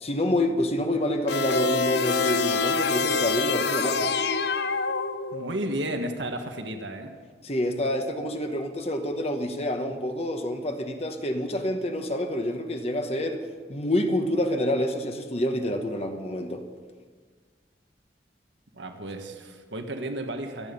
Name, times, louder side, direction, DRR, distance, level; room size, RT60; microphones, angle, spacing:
voice 1, 0.0-4.1 7.4-13.4 13.7-16.6, left 1 dB, 35° left, 5 dB, 1.1 m, -27 dB
sound 1, 1.3-5.6, left 4 dB, 65° left, 0.7 m, -26 dB
voice 2, 5.3-7.1 18.7-20.7, right 1 dB, 85° right, 5 dB, 1.6 m, -33 dB
25.5 x 8.9 x 5.4 m, 1.5 s
head